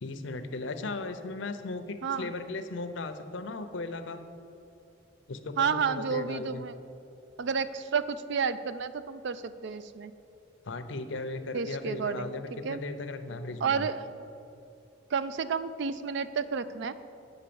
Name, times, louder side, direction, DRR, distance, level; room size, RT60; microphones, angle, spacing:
voice 1, 0.0-4.2 5.3-6.6 10.7-13.9, left 3 dB, 75° left, 9 dB, 0.7 m, -37 dB
voice 2, 2.0-2.3 5.6-6.7 7.4-10.1 11.5-12.4 12.6-12.8 13.6-14.1 15.1-16.9, right 6 dB, 65° right, 13 dB, 0.4 m, -31 dB
8.9 x 5.5 x 6.9 m, 2.8 s
head